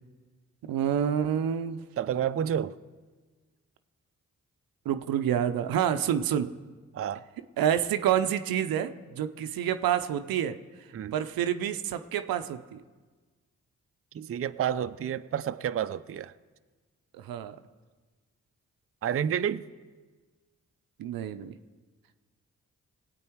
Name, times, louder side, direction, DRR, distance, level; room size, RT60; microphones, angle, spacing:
voice 1, 0.6-1.8 4.9-6.5 7.6-10.6 11.1-12.8 17.1-17.6 21.0-21.5, right 9 dB, 80° right, 0.6 m, -28 dB
voice 2, 2.0-2.8 6.9-7.2 10.9-11.1 14.1-16.3 19.0-19.6, right 9 dB, 40° right, 0.5 m, -30 dB
19.0 x 8.4 x 4.6 m
supercardioid pair, 40°, 35 cm